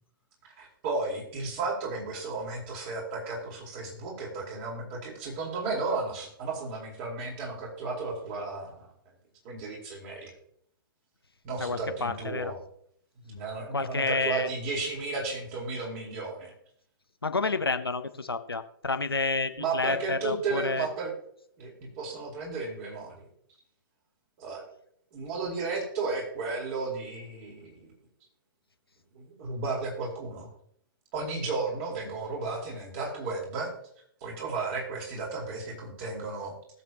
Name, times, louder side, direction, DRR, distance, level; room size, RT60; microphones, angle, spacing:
voice 1, 0.6-8.9 9.4-10.3 11.4-12.6 13.2-16.5 19.6-21.1 21.6-23.3 24.4-24.6 25.1-27.9 29.1-30.5 31.1-33.7 34.2-36.6, right 3 dB, 35° right, -2 dB, 4.7 m, -34 dB
voice 2, 11.6-12.5 13.7-14.5 17.2-20.9, left 3 dB, 85° left, 9 dB, 1.0 m, -29 dB
20.0 x 7.6 x 3.0 m, 0.68 s
figure-of-eight pair, 120°, 12 cm